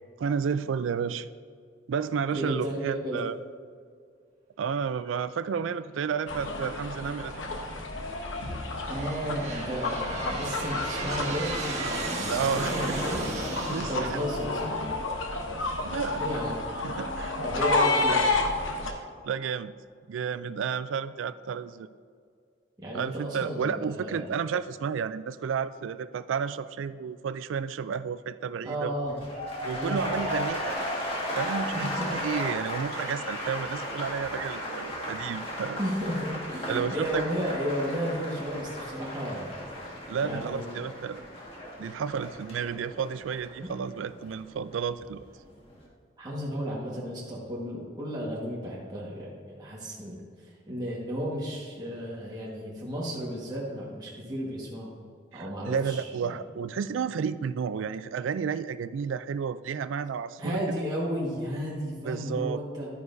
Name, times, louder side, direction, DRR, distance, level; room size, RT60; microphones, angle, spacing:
voice 1, 0.2-1.3 1.9-3.4 4.6-7.5 12.3-12.7 13.7-14.2 15.8-16.2 16.8-17.4 18.8-19.7 20.1-21.9 22.9-28.9 29.6-30.8 31.3-35.8 36.7-37.2 40.1-41.2 41.8-45.2 55.3-60.8 62.0-62.6, right 6 dB, 85° right, 14 dB, 0.3 m, -31 dB
voice 2, 2.3-3.2 8.9-13.3 13.7-14.8 16.1-16.6 17.4-18.2 22.8-24.3 28.6-29.2 29.7-30.0 31.7-32.1 35.8-39.7 40.2-40.8 46.2-54.9 55.3-56.3 60.4-62.9, equal, 20° right, -6 dB, 1.4 m, -33 dB
sound 1, 6.3-18.9, left 2 dB, 90° left, 1.0 m, -31 dB
Aircraft, 6.7-7.2 7.9-15.4, right 2 dB, 35° right, 1.4 m, -36 dB
sound 2, 29.1-45.1 45.4-45.9, equal, 30° left, 1.7 m, -35 dB
11.5 x 9.5 x 2.6 m, 2.2 s
head